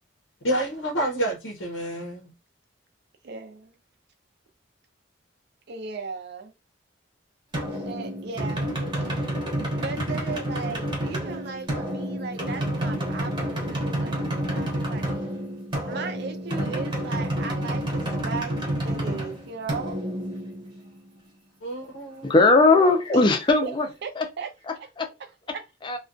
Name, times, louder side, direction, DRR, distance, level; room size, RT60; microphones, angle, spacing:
voice 1, 0.4-2.3 21.6-22.3, right 1 dB, 90° left, 0.7 m, -29 dB
voice 2, 3.2-3.8 5.7-6.5 7.9-8.7 9.0-15.2 15.8-20.0 23.1-23.2 23.6-23.7 24.0-24.9 25.2-25.6, right 5 dB, 55° right, 0.4 m, -37 dB
sound 1, 7.5-21.1, right 1 dB, 25° right, 0.8 m, -29 dB
voice 3, 22.2-23.9 24.2-24.3 25.0-25.1 25.8-26.0, left 3 dB, 25° left, 0.4 m, -18 dB
2.4 x 2.2 x 2.5 m
head